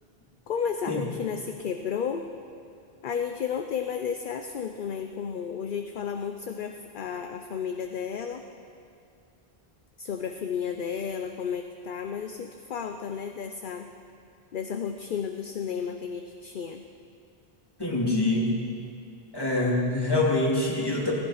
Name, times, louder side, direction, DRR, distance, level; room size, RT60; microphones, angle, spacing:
voice 1, 0.5-2.3 3.0-8.4 10.0-13.9 14.5-16.9, left 7 dB, 55° left, 6 dB, 0.8 m, -32 dB
voice 2, 17.8-18.6 19.3-21.1, left 2 dB, 20° left, -3 dB, 2.6 m, -25 dB
16.5 x 15.0 x 5.7 m, 2.4 s
omnidirectional pair, 1.0 m